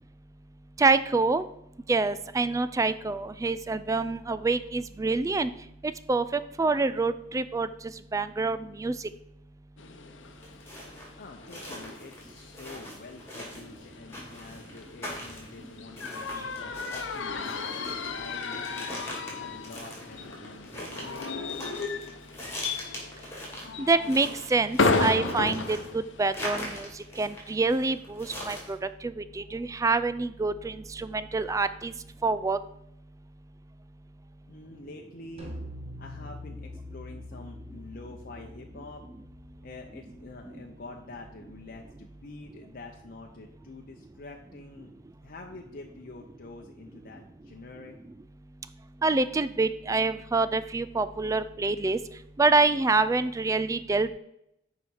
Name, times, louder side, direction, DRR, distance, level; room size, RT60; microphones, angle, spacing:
voice 1, 0.8-1.4 1.9-5.5 6.1-7.7 8.1-8.9 23.8-26.9 27.2-28.8 29.0-31.9 32.2-32.6 49.0-52.0 52.4-54.2, right 3 dB, 15° right, 13 dB, 0.3 m, -26 dB
sound 1, 9.8-26.9, left 3 dB, 80° left, 0.8 m, -34 dB
sound 2, 10.2-28.7, left 1 dB, 15° left, 2.8 m, -41 dB
voice 2, 11.2-21.1 34.5-35.5 36.0-39.0 39.6-48.0, left 2 dB, 50° left, 1 dB, 0.7 m, -46 dB
sound 3, 35.4-40.8, left 1 dB, 35° right, 1.4 m, -44 dB
6.9 x 4.9 x 6.3 m, 0.80 s
head